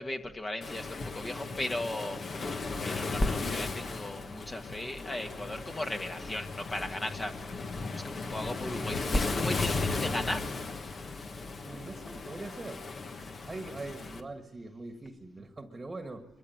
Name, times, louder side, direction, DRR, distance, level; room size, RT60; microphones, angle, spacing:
voice 1, 0.0-2.4 2.8-7.3 7.9-10.7, left 1 dB, 20° left, 5 dB, 1.6 m, -35 dB
Waves surf, 0.6-14.2, left 3 dB, 40° left, 1.5 m, -36 dB
voice 2, 11.6-12.9 13.4-16.3, right 2 dB, 25° right, 6 dB, 1.6 m, -42 dB
23.0 x 13.5 x 9.4 m, 1.1 s
cardioid pair, 90°, 0 cm